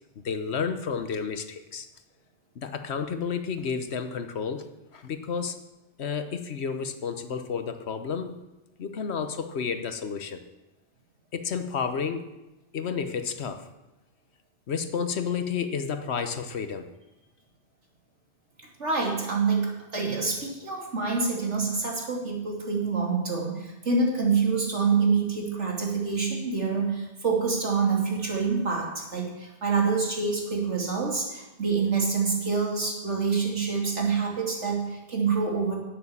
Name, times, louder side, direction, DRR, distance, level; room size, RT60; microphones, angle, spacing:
voice 1, 0.2-1.9 2.6-4.7 4.9-5.6 6.0-8.4 8.8-10.4 11.3-12.2 12.7-13.7 14.7-16.9, left 6 dB, 70° left, 9 dB, 1.2 m, -31 dB
voice 2, 18.8-35.8, right 4 dB, 90° right, -1 dB, 3.2 m, -26 dB
11.0 x 9.3 x 7.2 m, 1.0 s
omnidirectional pair, 1.2 m